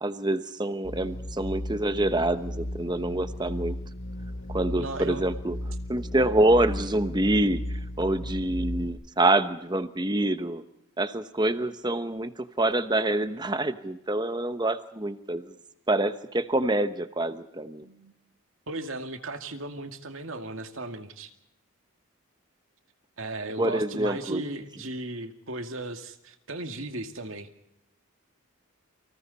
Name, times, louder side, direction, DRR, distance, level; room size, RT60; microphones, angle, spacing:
voice 1, 0.0-3.8 4.5-5.6 5.9-10.6 11.0-15.5 15.9-17.8 23.6-24.4, right 1 dB, 20° right, 10 dB, 1.0 m, -26 dB
sound 1, 0.8-8.9, left 1 dB, 55° left, 3.6 m, -35 dB
voice 2, 4.8-5.3 17.8-18.1 18.7-21.3 23.2-27.5, right 2 dB, 65° right, 6 dB, 2.2 m, -36 dB
29.0 x 25.5 x 4.2 m, 0.82 s
head